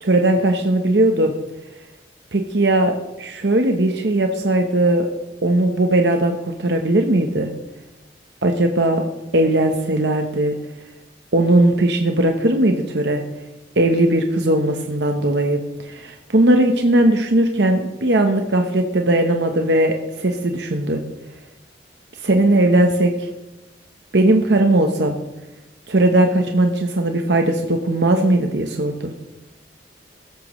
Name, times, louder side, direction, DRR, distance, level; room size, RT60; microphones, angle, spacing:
voice 1, 0.0-1.3 2.3-5.1 5.4-7.5 8.4-9.0 9.3-10.5 11.3-13.2 13.8-21.0 22.2-23.3 24.1-25.2 25.9-29.1, right 1 dB, 70° right, 4 dB, 1.1 m, -18 dB
16.0 x 13.5 x 3.2 m, 1.0 s
head